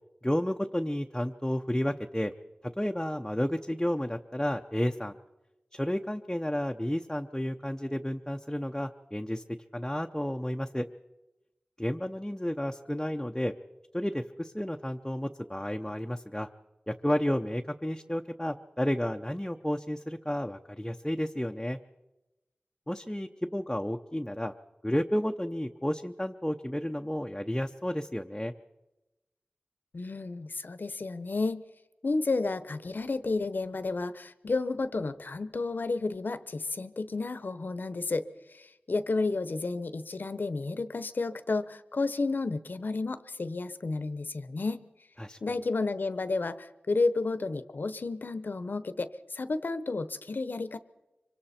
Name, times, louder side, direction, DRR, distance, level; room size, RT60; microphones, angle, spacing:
voice 1, 0.2-2.3 2.6-5.2 5.7-9.4 9.7-10.9 11.8-13.5 13.9-16.5 16.9-21.8 22.9-24.5 24.8-28.5 45.2-45.4, equal, 10° left, 3 dB, 0.8 m, -31 dB
voice 2, 29.9-31.6 32.0-44.8 45.4-50.8, left 3 dB, 70° left, 12 dB, 1.0 m, -31 dB
25.0 x 25.0 x 4.4 m, 0.99 s
wide cardioid pair, 70°, 3 cm